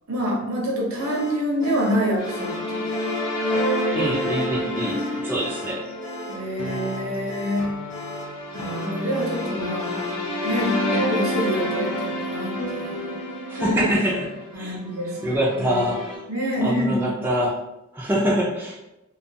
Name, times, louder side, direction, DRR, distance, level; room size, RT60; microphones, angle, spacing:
voice 1, 0.1-2.9 4.6-5.4 6.3-7.7 8.5-10.0 10.4-13.1 14.5-15.3 15.6-15.8 16.3-17.1, equal, 70° right, -2 dB, 0.7 m, -27 dB
sound 1, 1.0-10.9, left 1 dB, 55° left, 0.8 m, -38 dB
sound 2, 2.2-16.2, equal, 20° left, 0.7 m, -29 dB
voice 2, 3.9-5.9 13.5-14.8 15.0-16.2 16.6-17.6 17.9-18.8, equal, 10° right, -5 dB, 0.3 m, -25 dB
sound 3, 6.6-14.5, equal, 90° left, 0.5 m, -35 dB
2.4 x 2.2 x 2.7 m, 0.94 s
head